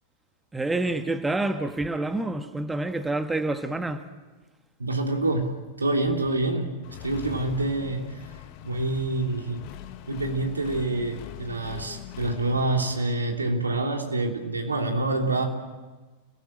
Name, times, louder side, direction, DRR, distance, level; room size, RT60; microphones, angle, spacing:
voice 1, 0.5-4.1, right 2 dB, 10° right, 9 dB, 1.5 m, -28 dB
voice 2, 4.8-6.7 7.0-8.2 8.6-9.6 10.1-15.4, right 2 dB, 80° right, 3 dB, 3.3 m, -27 dB
Accelerating revving vroom, 6.8-13.0, left 13 dB, 45° left, 1.8 m, -41 dB
29.0 x 19.0 x 8.9 m, 1.3 s
figure-of-eight pair, 90°, 0 cm